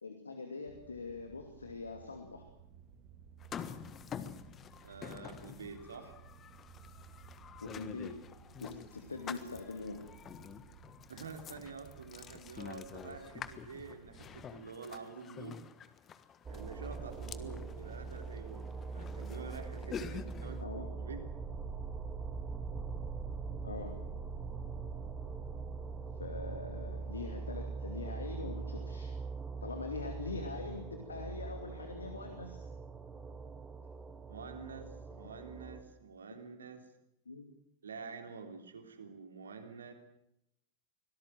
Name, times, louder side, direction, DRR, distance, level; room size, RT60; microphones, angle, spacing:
voice 1, 0.0-2.5 7.6-8.3 8.6-10.1 20.6-20.9 23.6-24.0 26.2-29.1 29.6-32.7 37.3-37.5, left 3 dB, 75° left, 5 dB, 2.5 m, -43 dB
sound 1, 0.6-14.5, right 7 dB, 40° right, 3.3 m, -57 dB
sound 2, 3.4-20.6, left 8 dB, 25° left, 1.5 m, -48 dB
voice 2, 4.8-6.1 11.1-15.6 16.5-21.2 34.3-36.9 37.8-39.9, right 5 dB, 70° right, 6 dB, 3.4 m, -47 dB
sound 3, 16.4-35.8, right 4 dB, 15° right, 2.8 m, -42 dB
24.5 x 18.0 x 7.7 m, 0.79 s
figure-of-eight pair, 90°, 0 cm